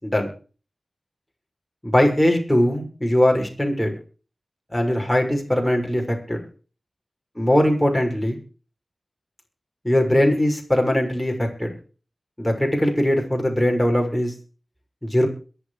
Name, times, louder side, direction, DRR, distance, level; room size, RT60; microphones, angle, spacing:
voice 1, 1.8-3.9 4.7-6.4 7.4-8.4 9.8-11.7 12.4-14.3 15.1-15.3, left 1 dB, 10° left, 1 dB, 6.5 m, -20 dB
22.5 x 8.0 x 5.1 m, 0.37 s
wide cardioid pair, 60°, 0 cm